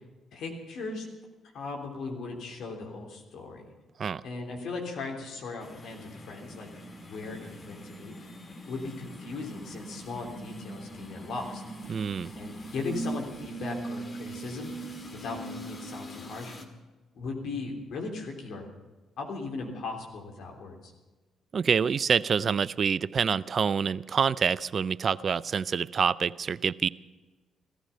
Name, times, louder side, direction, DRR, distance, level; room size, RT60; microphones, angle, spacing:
voice 1, 0.3-1.1 1.5-3.7 4.2-6.7 7.0-8.1 8.6-11.6 12.3-14.7 15.2-16.5 17.1-18.6 19.2-20.9, left 3 dB, 65° left, 1 dB, 3.3 m, -38 dB
sound 1, 5.6-16.6, right 1 dB, 40° left, 2.3 m, -41 dB
voice 2, 11.9-12.3 21.5-26.9, right 6 dB, 50° right, 20 dB, 0.4 m, -26 dB
16.0 x 14.0 x 5.6 m, 1.2 s
hypercardioid pair, 45°, 0 cm